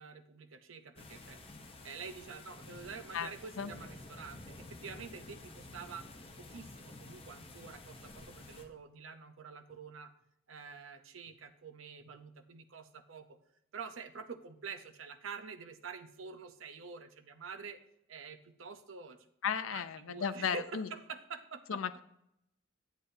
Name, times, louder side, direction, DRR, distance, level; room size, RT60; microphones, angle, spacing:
voice 1, 0.0-1.4 1.8-6.1 6.4-10.1 10.5-13.3 13.7-17.8 18.1-19.2 19.7-21.8, right 5 dB, 70° right, 10 dB, 0.7 m, -47 dB
sound 1, 1.0-8.7, left 2 dB, 30° left, 0.8 m, -51 dB
voice 2, 19.4-20.9 21.7-22.0, left 7 dB, 75° left, 13 dB, 0.5 m, -35 dB
9.6 x 8.1 x 2.7 m, 0.78 s
head